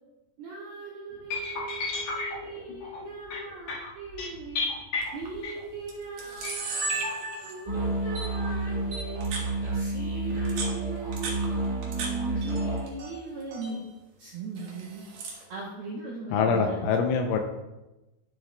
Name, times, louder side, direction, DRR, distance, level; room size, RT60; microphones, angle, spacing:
voice 1, 0.4-4.7 5.1-9.2 9.7-13.9 14.2-15.1 15.5-16.9, right 3 dB, 85° right, -3 dB, 2.1 m, -39 dB
sound 1, 1.3-5.9 6.4-6.5, left 3 dB, 55° left, 2.2 m, -33 dB
Camera, 5.0-5.3 5.9-6.0 6.2-7.7 8.2-8.3 8.9-9.5 10.3-12.1 12.4-13.1 13.4-13.8 14.6-15.4, right 3 dB, 60° right, 2.5 m, -35 dB
sound 2, 7.6-12.9, right 2 dB, 20° right, 1.3 m, -30 dB
voice 2, 16.3-17.4, left 5 dB, 80° left, 3 dB, 3.0 m, -24 dB
12.0 x 7.6 x 2.3 m, 1.0 s
omnidirectional pair, 5.9 m